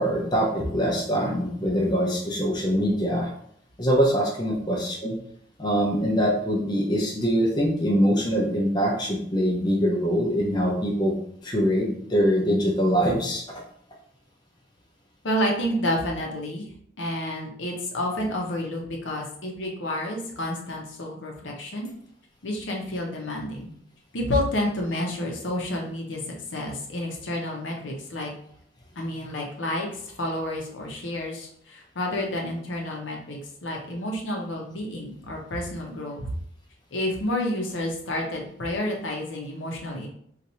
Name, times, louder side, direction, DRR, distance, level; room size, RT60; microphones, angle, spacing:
voice 1, 0.0-3.3 3.8-5.2 5.6-11.1 11.4-13.4, equal, 25° left, -2 dB, 0.6 m, -23 dB
voice 2, 15.2-16.7 17.0-21.9 22.4-23.7 24.1-26.2 26.5-28.3 29.0-36.3 36.9-40.1, left 1 dB, 85° left, 0 dB, 0.7 m, -30 dB
2.7 x 2.5 x 4.2 m, 0.66 s
head